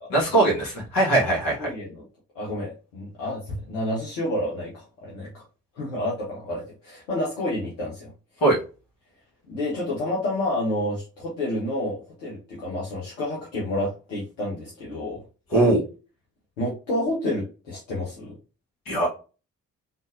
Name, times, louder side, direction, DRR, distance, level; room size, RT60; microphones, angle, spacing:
voice 1, 0.1-1.7 8.4-8.6 15.5-15.8 18.9-19.1, right 2 dB, 70° left, -3 dB, 1.8 m, -20 dB
voice 2, 1.6-2.0 2.3-5.4 5.8-8.1 9.5-15.2 16.6-18.4, left 1 dB, 90° left, -5 dB, 0.9 m, -29 dB
3.8 x 2.6 x 2.6 m, 0.33 s
hypercardioid pair, 40°, 35 cm